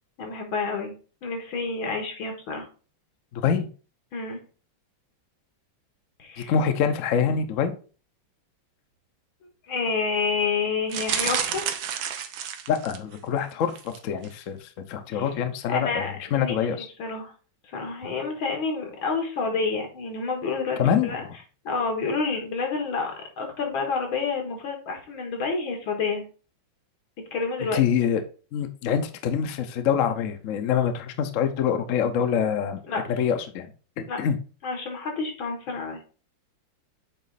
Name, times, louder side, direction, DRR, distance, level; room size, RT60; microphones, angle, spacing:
voice 1, 0.2-0.9 1.2-2.7 4.1-4.4 6.2-6.5 9.7-11.6 15.1-15.3 15.7-16.6 17.0-17.3 17.7-21.2 21.6-26.2 27.3-28.1 32.9-33.0 34.1-34.2 34.6-36.0, left 4 dB, 85° left, 2 dB, 2.3 m, -29 dB
voice 2, 3.3-3.7 6.4-7.7 12.7-16.9 20.8-21.4 27.7-28.2 28.5-33.7 34.0-34.4, left 8 dB, 65° left, 8 dB, 0.8 m, -25 dB
sound 1, 10.9-13.2 13.7-14.0 14.2-14.3, right 9 dB, 80° right, 1.5 m, -30 dB
8.3 x 3.1 x 4.0 m, 0.37 s
omnidirectional pair, 2.2 m